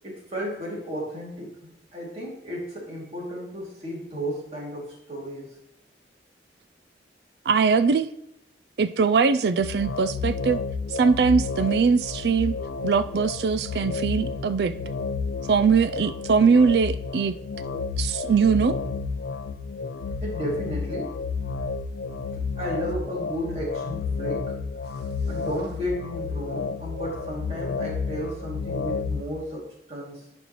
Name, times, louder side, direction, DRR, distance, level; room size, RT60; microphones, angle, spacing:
voice 1, 0.0-5.5 17.7-17.8 20.2-21.2 22.6-24.5 24.9-30.2, equal, 35° right, -3 dB, 2.6 m, -33 dB
voice 2, 7.5-8.1 8.8-10.6 10.9-12.5 12.8-14.7 15.5-17.3 18.0-18.8, right 5 dB, 70° right, 13 dB, 0.4 m, -21 dB
sound 1, 9.6-29.2, left 4 dB, 85° left, 0.5 m, -31 dB
11.5 x 5.3 x 3.1 m, 0.82 s
head